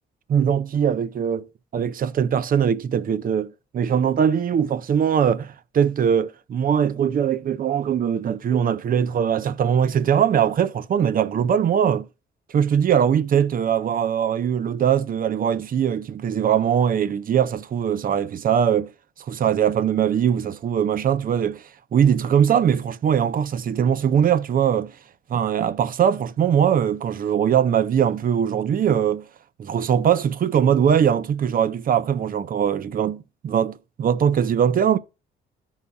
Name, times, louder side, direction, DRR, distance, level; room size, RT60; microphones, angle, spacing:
voice 1, 0.3-1.4 1.7-12.1 12.5-18.9 19.3-21.6 21.9-24.9 25.3-29.2 29.6-35.0, right 8 dB, 45° right, 0.5 m, -21 dB
14.0 x 5.5 x 2.3 m
cardioid pair, 90°, 20 cm